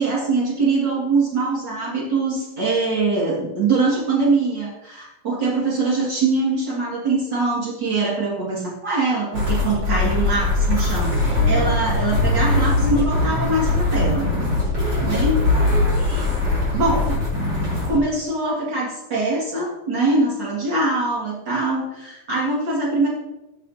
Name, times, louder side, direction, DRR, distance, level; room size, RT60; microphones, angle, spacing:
voice 1, 0.0-14.3 15.0-15.7 16.1-16.2 16.7-17.2 17.9-23.1, right 3 dB, 85° right, -5 dB, 1.0 m, -23 dB
sound 1, 9.3-18.0, left 2 dB, 25° right, 3.8 m, -21 dB
16.5 x 8.3 x 2.8 m, 0.97 s
omnidirectional pair, 5.7 m